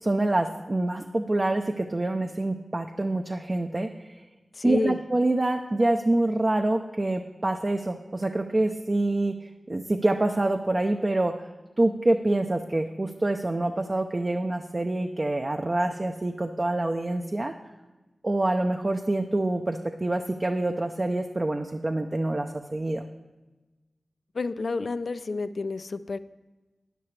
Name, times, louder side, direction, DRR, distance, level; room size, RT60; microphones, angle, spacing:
voice 1, 0.0-3.9 4.6-11.5 11.8-17.5 18.2-23.0, right 2 dB, 30° right, 4 dB, 0.5 m, -26 dB
voice 2, 4.5-5.0 24.3-26.2, left 3 dB, 70° left, 13 dB, 0.4 m, -29 dB
13.0 x 9.9 x 3.3 m, 1.1 s
wide cardioid pair, 95°, 0 cm